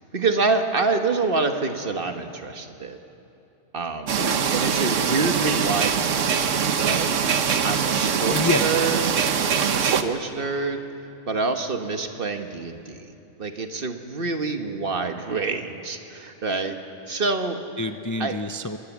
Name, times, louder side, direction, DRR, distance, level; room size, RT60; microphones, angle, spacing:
voice 1, 0.0-3.0 3.7-4.1 4.5-7.2 7.6-9.1 9.6-10.8 11.3-13.1 13.4-16.8 17.1-17.6 18.2-18.4, right 3 dB, 50° right, 6 dB, 1.5 m, -27 dB
sound 1, 4.1-10.0, right 7 dB, 90° right, 1.3 m, -23 dB
voice 2, 4.2-4.6 8.3-8.7 17.8-18.8, left 2 dB, 25° left, 7 dB, 0.4 m, -28 dB
23.5 x 20.0 x 7.3 m, 2.8 s
omnidirectional pair, 1.2 m